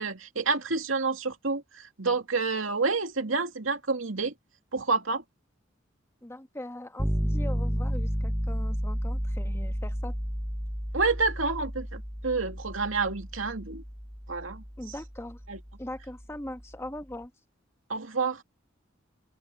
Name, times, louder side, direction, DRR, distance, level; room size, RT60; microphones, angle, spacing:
voice 1, 0.0-4.3 4.7-5.2 10.9-13.8 14.3-14.6 15.5-15.6 17.9-18.4, right 4 dB, 75° right, 2.6 m, -29 dB
voice 2, 6.2-10.1 14.8-15.4 15.8-17.3, left 1 dB, 15° left, 1.5 m, -40 dB
sound 1, 7.0-16.9, equal, 5° right, 1.2 m, -32 dB
head